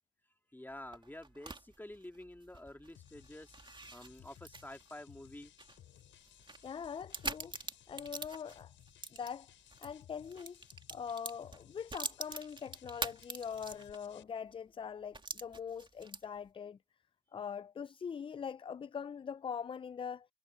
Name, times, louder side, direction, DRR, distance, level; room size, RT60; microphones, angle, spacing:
voice 1, 0.5-3.6 3.9-5.5, left 1 dB, 10° left, 2.9 m, -49 dB
sound 1, 0.7-9.9 10.2-14.1 14.5-14.6 15.1-16.5, right 3 dB, 25° right, 2.7 m, -45 dB
sound 2, 2.9-14.2, left 12 dB, 75° left, 7.5 m, -60 dB
voice 2, 6.6-7.5 7.9-8.7 9.1-9.5 9.8-10.6 10.9-16.8 17.3-20.3, left 7 dB, 25° left, 0.4 m, -42 dB
supercardioid pair, 70°, 20 cm